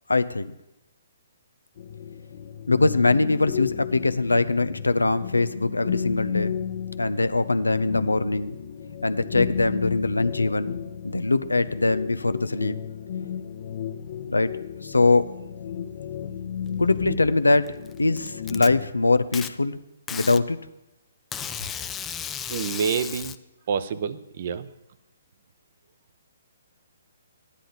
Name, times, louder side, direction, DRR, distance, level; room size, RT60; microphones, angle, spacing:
voice 1, 0.1-0.5 2.7-6.5 7.0-8.6 9.0-10.8 11.0-12.8 14.3-15.3 16.8-17.7 18.0-19.8 20.1-20.6, left 3 dB, 85° left, 13 dB, 0.6 m, -22 dB
sound 1, 1.8-18.9, left 8 dB, 55° left, 1.0 m, -33 dB
Packing tape duct tape, 17.7-18.7 19.3-19.5 20.1-20.4 21.3-23.4, left 8 dB, 15° left, 0.4 m, -34 dB
voice 2, 22.5-23.3 23.7-24.7, right 6 dB, 50° right, 13 dB, 0.7 m, -27 dB
13.0 x 9.9 x 4.0 m, 0.94 s
figure-of-eight pair, 130°, 0 cm